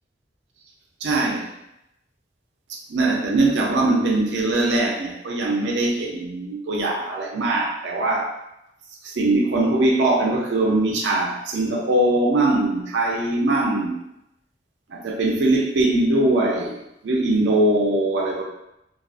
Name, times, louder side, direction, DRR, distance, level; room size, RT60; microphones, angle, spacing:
voice 1, 1.0-1.5 2.9-8.3 9.0-14.0 14.9-18.4, right 2 dB, 75° right, 0 dB, 0.5 m, -21 dB
2.4 x 2.3 x 2.4 m, 0.85 s
head